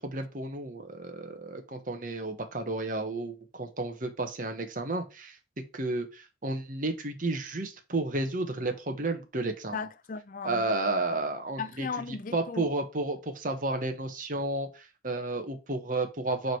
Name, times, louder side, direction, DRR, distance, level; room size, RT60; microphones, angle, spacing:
voice 1, 0.0-5.4 5.7-9.8 10.4-11.9 12.3-16.6, right 2 dB, 45° right, 1.2 m, -32 dB
voice 2, 9.7-11.0 11.6-12.7, left 5 dB, 45° left, 0.5 m, -37 dB
5.0 x 4.7 x 4.7 m
head